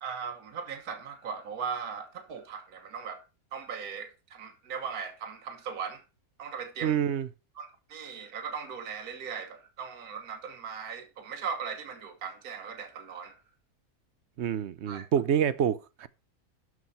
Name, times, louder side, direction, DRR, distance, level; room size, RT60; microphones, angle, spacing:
voice 1, 0.0-3.2 3.5-6.0 6.4-7.0 7.6-13.4 14.9-15.1, right 6 dB, 80° right, 1.7 m, -38 dB
voice 2, 6.8-7.3 14.4-16.1, right 8 dB, 55° right, 0.9 m, -27 dB
12.5 x 4.8 x 5.5 m
omnidirectional pair, 1.6 m